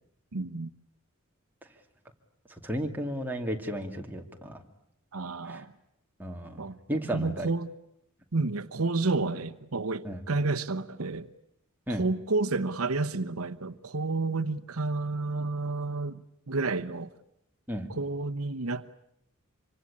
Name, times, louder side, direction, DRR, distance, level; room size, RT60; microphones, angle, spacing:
voice 1, 0.3-0.7 5.1-5.7 6.6-7.7 8.3-11.3 12.0-16.2 16.5-17.1 17.9-18.9, right 3 dB, 80° right, 10 dB, 1.0 m, -30 dB
voice 2, 2.6-4.6 5.5-5.6 6.2-7.5 10.0-10.2 11.9-12.1 17.7-17.9, equal, 10° right, 2 dB, 2.5 m, -34 dB
26.0 x 25.5 x 8.6 m, 0.79 s
head